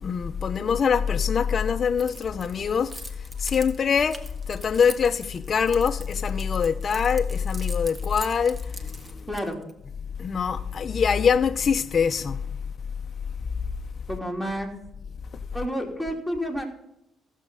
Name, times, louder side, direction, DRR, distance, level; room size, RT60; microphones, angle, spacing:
voice 1, 0.0-2.9 3.4-4.2 4.5-9.2 10.2-12.4, left 6 dB, 45° left, 0.7 m, -24 dB
Keys jangling, 2.0-9.7, right 1 dB, 25° right, 1.7 m, -43 dB
voice 2, 9.3-9.6 14.1-14.7 15.5-16.6, equal, 5° right, 3.0 m, -29 dB
15.0 x 7.4 x 5.4 m
cardioid pair, 90°, 0 cm